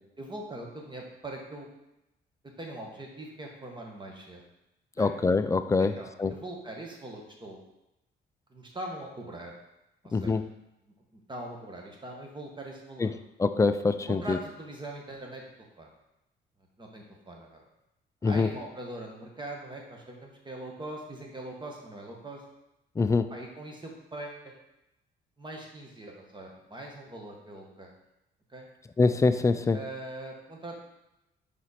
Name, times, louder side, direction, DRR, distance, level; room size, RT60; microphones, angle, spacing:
voice 1, 0.2-1.7 2.6-4.4 5.0-5.1 5.8-7.6 8.5-9.5 10.0-10.3 11.1-13.1 14.1-15.4 15.8-15.9 16.8-17.6 18.2-22.4 23.3-24.6 25.4-27.9 28.5-28.7 29.7-30.8, right 1 dB, 25° right, 0 dB, 1.4 m, -41 dB
voice 2, 5.0-6.3 10.1-10.5 13.0-14.4 18.2-18.5 23.0-23.3 29.0-29.8, left 4 dB, 15° left, 11 dB, 0.3 m, -25 dB
5.1 x 4.4 x 4.2 m, 0.90 s
cardioid pair, 90°, 20 cm